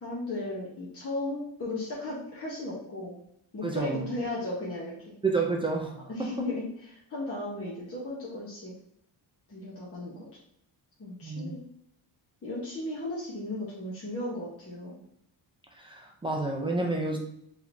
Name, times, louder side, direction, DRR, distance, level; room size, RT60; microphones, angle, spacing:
voice 1, 0.0-3.2 3.5-5.2 6.1-8.7 9.5-10.3 11.0-11.6 12.4-15.0, left 2 dB, 30° left, -6 dB, 1.0 m, -35 dB
voice 2, 3.6-4.1 5.2-6.3 11.2-11.5 15.8-17.2, right 3 dB, 10° right, 0 dB, 0.4 m, -30 dB
4.8 x 3.2 x 2.6 m, 0.74 s
wide cardioid pair, 165°, 49 cm